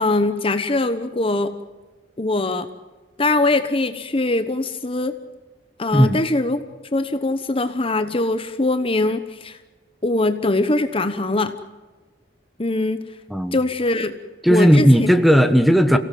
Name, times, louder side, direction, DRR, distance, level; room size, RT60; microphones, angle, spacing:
voice 1, 0.0-1.5 2.2-2.7 3.2-5.1 5.8-6.6 6.9-9.6 10.0-11.5 12.6-13.1 13.5-14.1 14.5-14.9, left 2 dB, 30° left, 9 dB, 1.1 m, -22 dB
voice 2, 14.4-16.0, equal, ahead, 9 dB, 1.4 m, -15 dB
29.0 x 17.5 x 7.7 m, 1.3 s
head